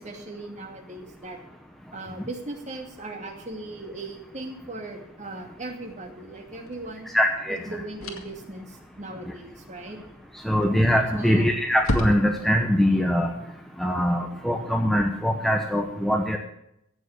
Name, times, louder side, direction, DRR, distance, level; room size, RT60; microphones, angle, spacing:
voice 1, 0.0-1.4 1.9-7.1 7.7-10.0 11.1-11.5, right 2 dB, 35° right, 2 dB, 2.4 m, -38 dB
sound 1, 6.6-6.8 8.0-8.5 10.6-11.0 11.3-11.4 11.8-12.6, left 1 dB, 80° left, 2.1 m, -29 dB
voice 2, 7.1-7.6 10.4-13.3 13.8-16.4, equal, ahead, 2 dB, 1.0 m, -22 dB
16.0 x 7.1 x 8.6 m, 0.79 s
head